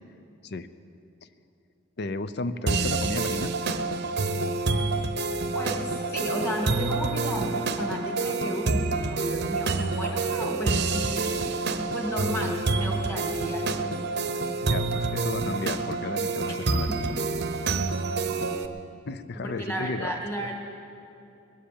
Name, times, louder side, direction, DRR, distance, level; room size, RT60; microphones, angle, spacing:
voice 1, 2.0-3.9 14.6-16.9 19.1-20.1 20.4-20.5, left 3 dB, 55° left, 13 dB, 0.6 m, -33 dB
sound 1, 2.7-18.7, right 3 dB, 55° right, 0.7 m, -28 dB
voice 2, 5.5-11.3 11.8-13.9 16.4-16.6 16.9-17.0 19.4-20.5, equal, 15° left, 0 dB, 2.2 m, -33 dB
21.0 x 7.5 x 8.5 m, 2.7 s
head